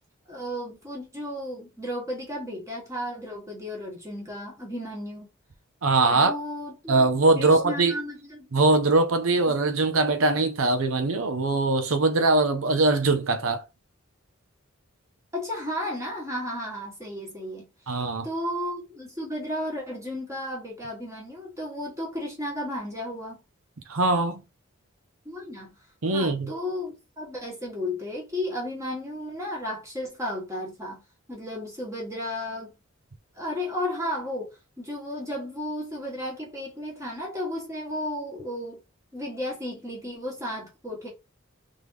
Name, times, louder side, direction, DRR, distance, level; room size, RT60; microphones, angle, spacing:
voice 1, 0.3-5.3 6.1-7.1 7.3-8.5 15.3-17.7 18.2-23.4 25.2-25.7 26.1-31.0 31.3-32.7 33.3-38.8 39.1-41.1, left 1 dB, 15° right, 1.5 m, -33 dB
voice 2, 5.8-6.3 6.9-8.0 8.5-13.6 17.9-18.3 23.9-24.4 26.0-26.5, right 3 dB, 85° right, 0.7 m, -22 dB
3.6 x 3.6 x 3.2 m
head